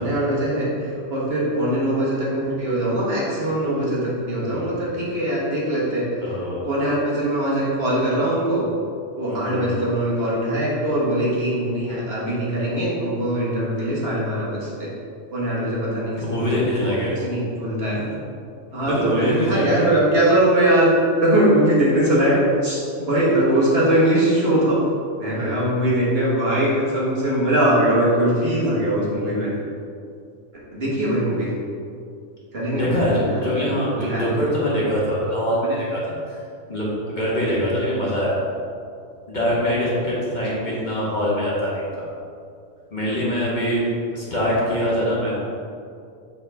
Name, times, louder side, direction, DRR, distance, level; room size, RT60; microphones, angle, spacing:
voice 1, 0.0-6.4 6.6-8.7 9.2-14.9 15.3-18.0 18.7-20.9 21.2-24.8 25.2-29.5 30.7-31.5 32.5-33.6 34.0-34.3 40.6-40.8 44.3-44.6, right 1 dB, 50° right, -6 dB, 1.6 m, -21 dB
voice 2, 4.4-4.8 6.2-6.7 9.3-9.8 16.2-17.1 17.9-18.0 18.9-19.9 25.3-25.5 29.2-29.3 32.7-36.4 36.7-38.6 39.3-42.0 42.9-43.9 44.1-45.5, equal, 40° left, -6 dB, 1.3 m, -24 dB
6.8 x 4.8 x 3.4 m, 2.4 s
omnidirectional pair, 1.3 m